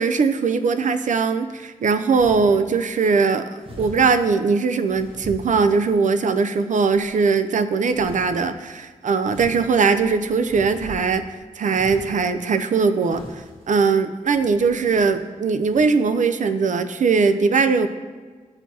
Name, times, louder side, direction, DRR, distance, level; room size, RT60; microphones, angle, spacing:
voice 1, 0.0-3.4 3.8-11.2 11.6-13.2 13.7-17.9, right 5 dB, 65° right, 10 dB, 0.4 m, -20 dB
sound 1, 2.1-2.6 3.6-4.1 4.9-6.1 6.6-7.1 7.9-8.4 9.2-11.3 11.7-12.3 13.0-13.7 14.3-15.2 15.7-15.8, equal, 40° right, 1.3 m, -40 dB
10.5 x 4.6 x 2.7 m, 1.5 s
cardioid pair, 65°, 14 cm